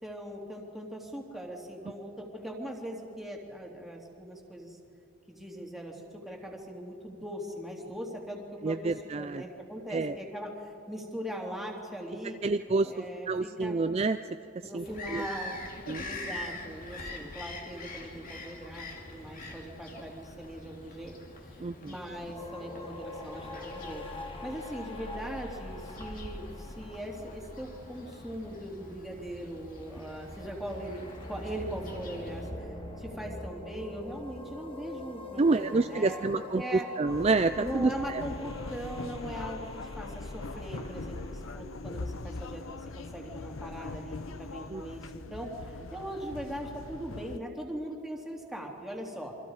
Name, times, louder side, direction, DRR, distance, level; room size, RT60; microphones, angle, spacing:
voice 1, 0.0-4.8 5.3-12.4 12.8-13.8 14.6-15.6 16.0-21.1 21.4-32.7 33.0-36.3 36.5-36.9 37.6-49.3, right 1 dB, ahead, -1 dB, 2.9 m, -40 dB
voice 2, 8.6-9.4 9.9-10.1 12.4-12.9 13.3-14.2 14.7-14.8 15.1-15.2 15.9-16.1 21.6-21.9 35.4-36.6 37.0-37.9 44.7-44.8, right 3 dB, 30° right, 10 dB, 0.4 m, -27 dB
Bird vocalization bird call bird song, 14.8-32.5, left 2 dB, 45° left, 2.5 m, -45 dB
sound 1, 22.3-41.5, left 2 dB, 25° left, 1.8 m, -44 dB
sound 2, 37.1-47.4, left 3 dB, 85° left, 0.8 m, -41 dB
27.5 x 24.5 x 4.9 m, 2.6 s
head